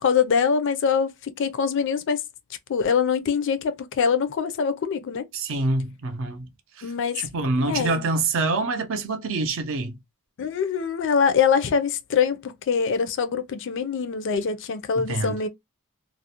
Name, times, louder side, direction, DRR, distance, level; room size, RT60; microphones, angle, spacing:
voice 1, 0.0-2.2 2.7-5.3 6.8-7.2 7.6-8.0 10.4-15.5, left 6 dB, 55° left, 0.4 m, -24 dB
voice 2, 5.3-6.5 6.8-6.9 7.1-10.0 14.9-15.4, right 3 dB, 60° right, 0.5 m, -26 dB
2.4 x 2.0 x 2.7 m
head